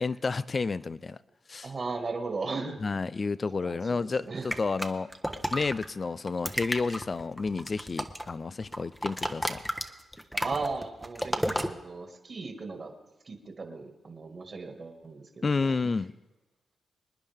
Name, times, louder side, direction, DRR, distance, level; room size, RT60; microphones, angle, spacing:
voice 1, 0.0-1.2 1.5-1.7 2.8-5.1 5.5-9.6 15.4-16.1, left 4 dB, 40° left, 0.4 m, -30 dB
voice 2, 1.6-2.8 3.6-4.5 10.3-12.9 13.3-15.9, right 3 dB, 45° right, 2.0 m, -37 dB
sound 1, 4.5-5.9 6.3-8.3 8.6-11.7, equal, ahead, 1.0 m, -32 dB
25.5 x 9.9 x 3.6 m
cardioid pair, 75°, 0 cm